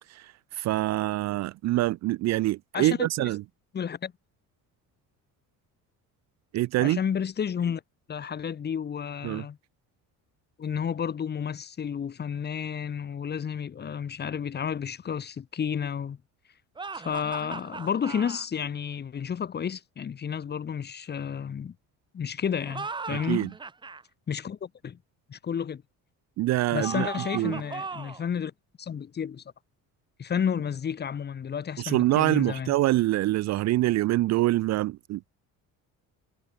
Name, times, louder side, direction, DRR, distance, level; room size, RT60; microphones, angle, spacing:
voice 1, 0.1-3.4 6.5-7.0 9.2-9.4 23.1-23.5 26.4-27.1 27.3-27.6 31.8-35.3, right 17 dB, 50° right, 0.5 m, -25 dB
voice 2, 2.7-3.3 3.7-4.1 6.8-7.8 8.1-9.6 10.6-16.2 16.9-21.8 22.1-23.5 24.3-25.0 25.3-25.8 26.7-28.5 28.8-29.4 30.2-32.7, left 7 dB, 30° left, 2.2 m, -31 dB
sound 1, 16.8-18.5 22.6-24.0 26.8-28.3, right 4 dB, 15° right, 0.9 m, -38 dB
cardioid pair, 170°, 34 cm